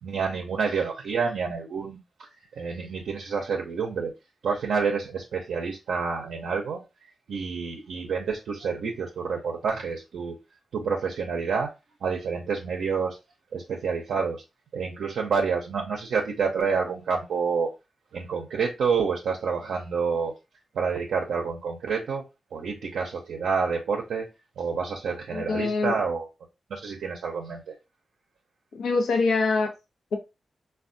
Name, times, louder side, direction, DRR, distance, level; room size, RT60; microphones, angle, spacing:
voice 1, 0.0-2.3 2.6-4.1 4.4-6.8 7.3-10.4 10.7-11.7 12.0-13.1 13.5-14.4 14.7-17.7 18.1-20.3 20.7-22.2 22.5-24.2 24.6-26.3 26.7-27.7, right 5 dB, 80° right, 0.5 m, -28 dB
voice 2, 25.3-25.9 28.8-29.7, left 4 dB, 80° left, 0.6 m, -24 dB
3.3 x 2.2 x 2.5 m
supercardioid pair, 50°, 0 cm